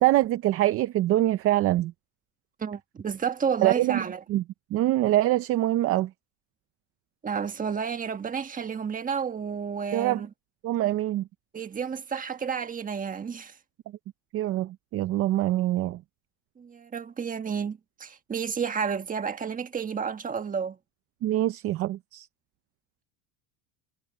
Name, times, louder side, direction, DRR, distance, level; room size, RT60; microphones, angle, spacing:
voice 1, 0.0-1.9 3.6-4.0 4.3-4.4 4.7-6.1 9.9-10.2 10.6-11.3 14.3-16.0 21.2-22.3, right 15 dB, 35° right, 0.5 m, -24 dB
voice 2, 2.6-4.2 7.2-10.3 11.5-13.6 16.6-20.8, right 6 dB, 20° right, 1.4 m, -31 dB
cardioid pair, 150°, 44 cm